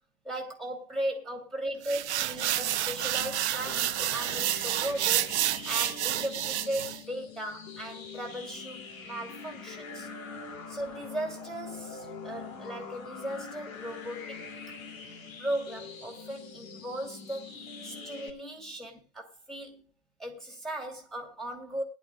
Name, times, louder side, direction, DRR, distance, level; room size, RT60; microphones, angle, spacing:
voice 1, 0.2-5.3 5.6-10.1 10.7-14.4 15.4-17.5 17.8-19.8 20.2-21.8, right 1 dB, ahead, 2.8 m, -37 dB
sound 1, 1.8-7.0, right 13 dB, 50° right, 0.8 m, -29 dB
sound 2, 2.3-18.3, left 5 dB, 65° left, 3.1 m, -44 dB
20.5 x 11.0 x 2.5 m
hypercardioid pair, 130°, 43 cm